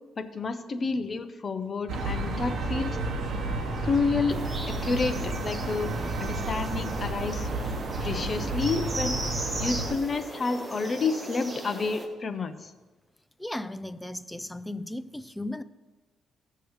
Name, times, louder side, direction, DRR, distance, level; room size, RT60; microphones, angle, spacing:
voice 1, 0.2-3.0 3.8-7.5 8.0-9.2 9.6-12.7, left 4 dB, 40° left, 0.8 m, -30 dB
sound 1, 1.9-9.9, right 2 dB, 60° right, 1.2 m, -31 dB
sound 2, 4.3-12.1, right 2 dB, 20° right, 1.4 m, -37 dB
voice 2, 13.4-15.6, left 1 dB, 5° left, 0.5 m, -36 dB
17.0 x 6.8 x 3.2 m
cardioid pair, 90°, 0 cm